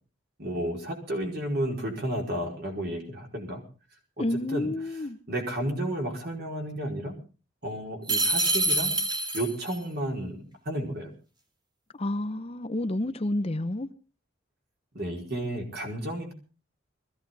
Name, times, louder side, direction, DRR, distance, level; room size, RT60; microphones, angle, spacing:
voice 1, 0.4-3.6 4.2-4.7 5.3-7.1 7.6-8.9 9.3-10.4 10.6-11.1 14.9-16.3, right 1 dB, 55° right, 4.8 m, -32 dB
voice 2, 4.2-5.2 11.9-13.9, left 1 dB, 30° left, 0.7 m, -30 dB
sound 1, 8.1-9.8, right 2 dB, 25° right, 2.6 m, -26 dB
21.0 x 15.5 x 4.0 m
head